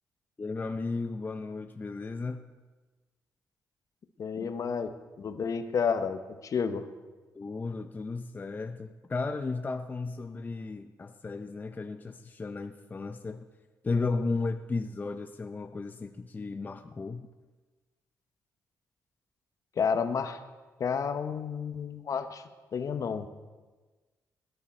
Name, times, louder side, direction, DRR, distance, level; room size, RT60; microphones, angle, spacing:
voice 1, 0.4-2.5 4.3-4.5 7.3-13.5 13.8-17.3, left 3 dB, 25° left, 7 dB, 0.5 m, -34 dB
voice 2, 4.2-4.9 5.2-6.8 19.8-20.4 20.8-22.4 22.7-23.3, left 6 dB, 55° left, 9 dB, 1.0 m, -30 dB
17.5 x 10.5 x 4.3 m, 1.3 s
cardioid pair, 100°, 7 cm